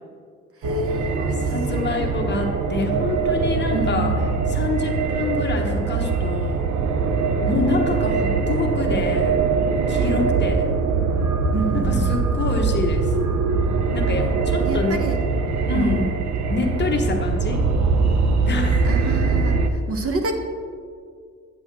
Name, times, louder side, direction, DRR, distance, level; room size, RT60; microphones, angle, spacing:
voice 1, 0.6-2.1 3.7-4.2 7.5-7.7 11.5-12.1 14.6-15.2 15.7-16.1 18.8-20.3, right 2 dB, 50° right, 4 dB, 1.0 m, -28 dB
sound 1, 0.6-19.7, right 4 dB, 65° right, 0.7 m, -22 dB
voice 2, 1.5-4.1 4.5-6.7 7.5-9.4 9.9-10.7 11.7-13.1 13.9-15.0 15.7-16.1 16.5-17.7 18.4-19.2, left 3 dB, 35° left, 2 dB, 1.1 m, -26 dB
9.2 x 7.8 x 3.0 m, 2.1 s
cardioid pair, 90°, 30 cm